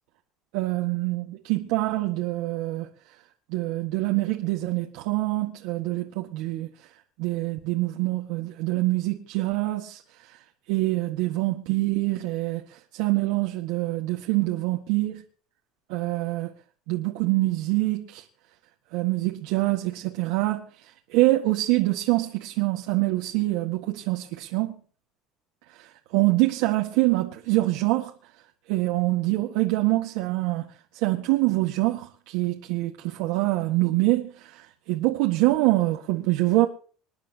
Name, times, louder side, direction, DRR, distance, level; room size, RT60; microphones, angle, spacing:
voice 1, 0.5-2.9 3.5-6.7 7.2-10.4 10.7-15.2 15.9-16.5 16.9-18.2 18.9-24.8 25.7-28.1 28.7-30.7 30.9-36.7, right 19 dB, 75° right, 1.7 m, -25 dB
27.0 x 10.5 x 3.0 m
cardioid pair, 145°, 0 cm